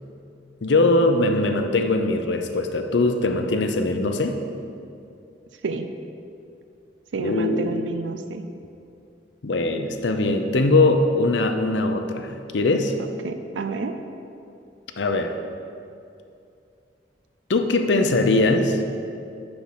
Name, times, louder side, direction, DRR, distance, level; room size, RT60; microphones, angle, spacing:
voice 1, 0.6-4.4 7.2-7.8 9.4-12.9 15.0-15.4 17.5-18.8, left 2 dB, 75° left, 6 dB, 0.6 m, -21 dB
voice 2, 7.1-8.4 13.2-13.9, right 3 dB, 90° right, 8 dB, 0.5 m, -29 dB
9.6 x 4.5 x 5.8 m, 2.5 s
head